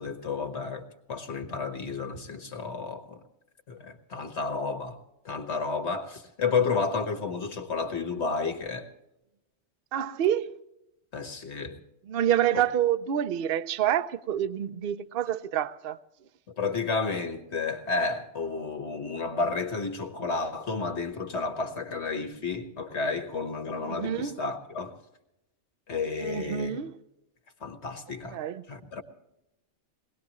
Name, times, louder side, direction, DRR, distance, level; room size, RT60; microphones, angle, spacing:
voice 1, 0.0-3.2 3.7-5.0 5.3-8.9 11.1-11.8 12.5-12.6 16.5-25.0 25.9-26.8 27.6-28.4 28.7-29.0, left 4 dB, 65° left, 1.7 m, -31 dB
voice 2, 9.9-10.6 12.1-16.0 23.8-24.4 26.2-26.9 28.3-28.6, right 10 dB, 55° right, 0.8 m, -27 dB
23.0 x 19.0 x 3.0 m
omnidirectional pair, 1.2 m